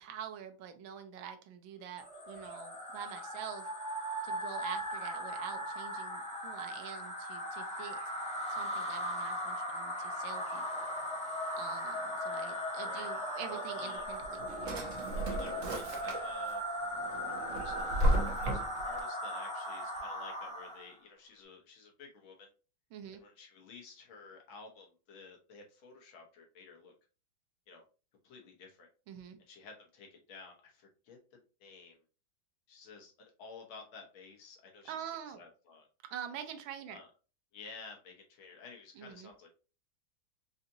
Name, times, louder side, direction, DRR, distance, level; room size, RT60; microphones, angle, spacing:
voice 1, 0.0-3.7 4.2-8.0 8.5-10.9 11.6-14.8 22.9-23.2 29.1-29.4 34.9-35.4 36.1-37.0 38.9-39.3, right 9 dB, 80° right, 6 dB, 1.4 m, -45 dB
sound 1, 2.0-20.0, left 4 dB, 60° left, 2.2 m, -58 dB
sound 2, 2.0-20.9, equal, 5° left, 1.2 m, -38 dB
voice 2, 13.5-14.1 15.2-16.8 17.5-22.5 23.1-26.9 27.7-27.8 28.2-28.9 29.5-32.0 32.7-35.9 36.9-37.1 37.5-39.5, left 4 dB, 85° left, 1 dB, 1.9 m, -53 dB
Drawer open or close, 14.0-16.5 16.9-19.0, right 1 dB, 55° right, 1.0 m, -34 dB
5.0 x 2.6 x 2.7 m, 0.34 s
omnidirectional pair, 2.2 m